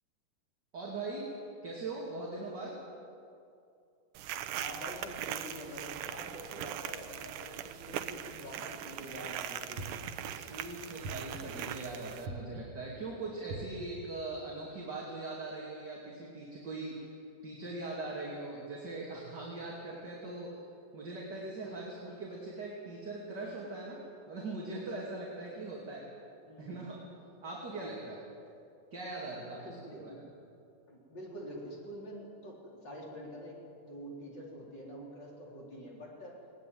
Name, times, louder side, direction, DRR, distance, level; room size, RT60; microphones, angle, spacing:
voice 1, 0.7-1.3 1.6-2.8 8.5-8.6 10.2-17.1 17.4-20.6 20.9-26.1 26.6-27.0 27.4-28.2 28.9-30.1, right 2 dB, 35° right, -3 dB, 3.1 m, -41 dB
sound 1, 4.1-12.3, right 10 dB, 75° right, 2.3 m, -41 dB
voice 2, 4.5-9.9 26.4-26.9 29.6-30.2 30.9-36.4, equal, 30° left, -2 dB, 4.6 m, -46 dB
sound 2, 9.8-10.4 11.0-11.7 12.3-12.9 13.5-14.1, right 2 dB, 50° right, 2.0 m, -43 dB
20.0 x 19.0 x 9.4 m, 2.5 s
omnidirectional pair, 3.8 m